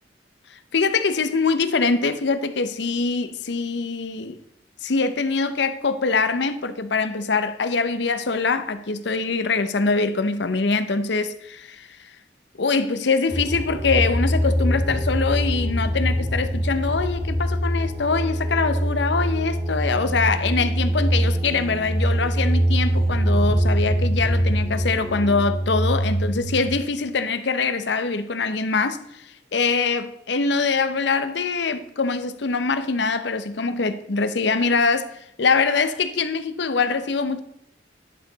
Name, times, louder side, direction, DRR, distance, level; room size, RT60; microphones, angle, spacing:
voice 1, 0.7-4.4 4.8-11.9 12.6-29.2 29.5-37.4, left 4 dB, 65° left, 0.7 m, -23 dB
sound 1, 13.3-26.7, equal, 15° right, 1.8 m, -23 dB
11.0 x 6.7 x 3.9 m
head